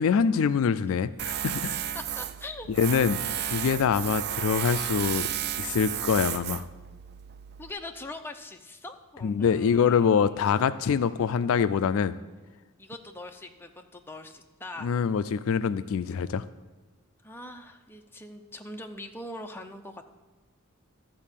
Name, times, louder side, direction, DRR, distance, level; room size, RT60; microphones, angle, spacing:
voice 1, 0.0-1.9 2.8-5.3 5.6-6.6 9.2-12.2 14.8-16.4, left 6 dB, 65° left, 14 dB, 0.3 m, -25 dB
Tools, 1.2-7.7, right 11 dB, 50° right, 0.4 m, -33 dB
voice 2, 1.9-2.7 7.6-11.6 12.8-15.0 17.2-20.0, left 2 dB, 10° left, 4 dB, 0.6 m, -43 dB
12.5 x 4.4 x 7.4 m, 1.3 s
head